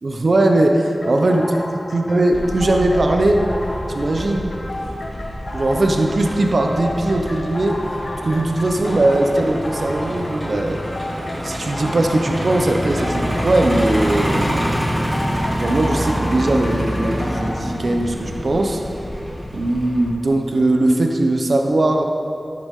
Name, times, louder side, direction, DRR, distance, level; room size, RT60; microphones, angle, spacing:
voice 1, 0.0-1.4 1.9-3.4 3.9-4.5 5.5-7.8 8.2-10.8 11.4-14.7 15.6-18.8 19.5-22.0, right 2 dB, 70° right, 2 dB, 0.9 m, -19 dB
sound 1, 1.0-17.7, left 1 dB, 65° left, 1.3 m, -33 dB
Truck, 2.3-20.1, equal, 15° right, 2.7 m, -27 dB
12.5 x 8.6 x 3.8 m, 2.8 s
cardioid pair, 45°, 0 cm